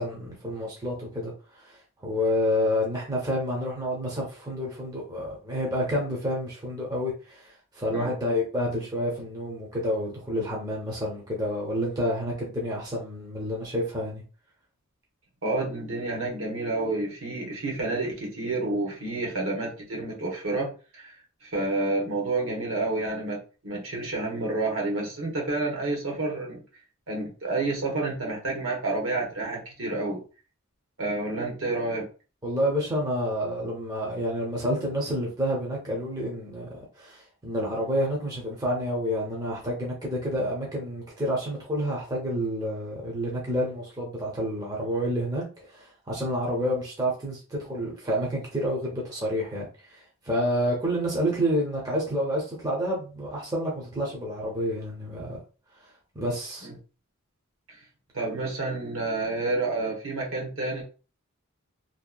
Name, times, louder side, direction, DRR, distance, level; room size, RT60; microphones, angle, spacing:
voice 1, 0.0-1.3 1.6-1.8 2.0-14.2 32.4-55.4 56.1-56.7, equal, 15° right, 0.6 m, -29 dB
voice 2, 15.4-21.1 21.4-26.6 27.1-30.2 31.0-32.1 56.6-56.7 57.7-57.8 58.1-60.8, right 2 dB, 65° right, 0.9 m, -29 dB
2.7 x 2.2 x 2.2 m
head